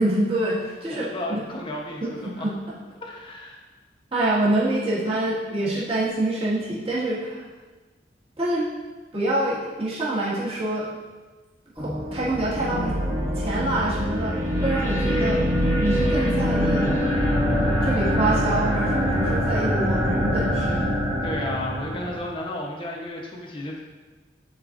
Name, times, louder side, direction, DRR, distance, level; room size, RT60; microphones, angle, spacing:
voice 1, 0.0-1.4 2.0-2.5 4.1-7.4 8.4-8.6 9.1-10.9 11.7-13.0 13.3-15.4 15.8-17.0 17.8-20.9, right 1 dB, 35° right, -9 dB, 1.8 m, -26 dB
voice 2, 0.9-2.5 3.0-3.6 21.2-23.8, left 1 dB, 30° left, -1 dB, 0.9 m, -33 dB
sound 1, 11.8-22.3, equal, 15° right, 1.2 m, -24 dB
10.5 x 4.2 x 2.5 m, 1.3 s
head